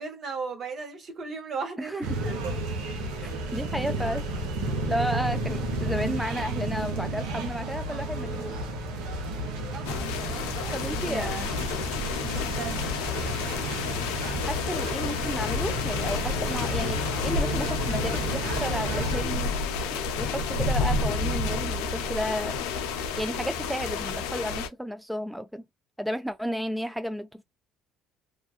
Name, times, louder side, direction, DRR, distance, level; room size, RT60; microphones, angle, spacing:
voice 1, 0.0-2.5 9.7-11.5 12.2-12.8, right 4 dB, 50° right, 0.9 m, -36 dB
sound 1, 2.0-19.2, right 2 dB, 75° right, 0.7 m, -32 dB
voice 2, 3.2-4.2 4.9-8.6 10.7-11.3 14.4-19.5 19.9-22.6 23.2-25.6 26.0-27.4, equal, 5° right, 0.3 m, -32 dB
sound 2, 9.8-24.7, left 4 dB, 80° left, 0.4 m, -30 dB
2.4 x 2.3 x 2.4 m
hypercardioid pair, 65°, 0 cm